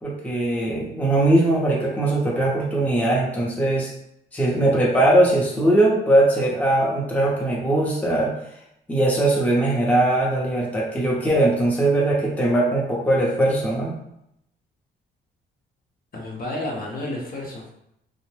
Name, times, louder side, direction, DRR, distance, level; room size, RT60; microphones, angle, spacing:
voice 1, 0.0-3.9 4.3-8.3 8.9-13.9, right 1 dB, 5° left, -5 dB, 0.7 m, -20 dB
voice 2, 16.1-17.7, left 1 dB, 45° left, -2 dB, 0.8 m, -31 dB
2.5 x 2.1 x 3.2 m, 0.78 s
cardioid pair, 90°, 20 cm